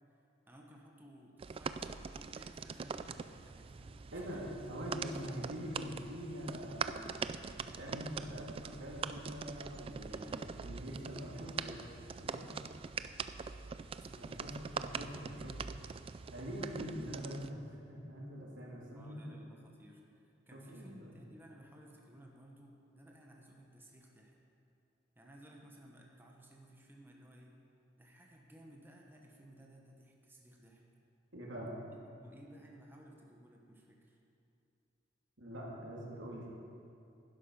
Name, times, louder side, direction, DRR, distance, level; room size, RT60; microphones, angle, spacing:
voice 1, 0.5-4.5 10.1-10.6 14.0-14.5 15.1-15.3 18.9-24.4 25.1-27.6 28.0-30.8 32.1-34.2, right 1 dB, 10° right, -1 dB, 1.1 m, -58 dB
sound 1, 1.4-17.5, right 5 dB, 30° right, 0.3 m, -43 dB
voice 2, 4.1-7.0 7.5-11.8 12.2-12.5 14.1-15.5 16.3-17.6 17.9-19.4 20.5-21.1 31.3-31.7 35.4-36.5, equal, 90° right, -3 dB, 2.5 m, -44 dB
11.5 x 10.5 x 5.4 m, 2.6 s
head